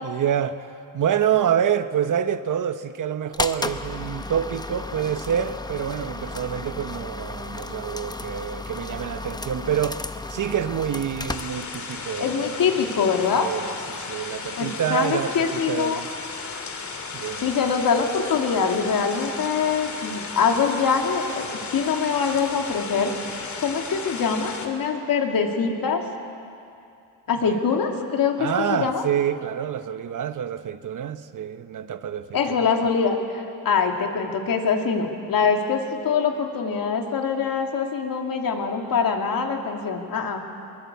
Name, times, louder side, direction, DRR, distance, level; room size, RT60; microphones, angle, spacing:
voice 1, 0.0-0.7 0.9-10.0 10.3-12.7 13.3-16.1 17.1-17.5 27.5-27.6 28.4-32.7, right 9 dB, 55° right, 1.0 m, -27 dB
sound 1, 3.3-12.1, left 2 dB, 10° left, 0.8 m, -33 dB
sound 2, 11.3-24.7, left 4 dB, 50° left, 2.7 m, -35 dB
voice 2, 12.2-13.5 14.6-16.0 17.4-26.0 27.3-29.1 32.3-40.4, left 6 dB, 65° left, 2.8 m, -24 dB
23.0 x 19.5 x 8.3 m
cardioid pair, 100°, 37 cm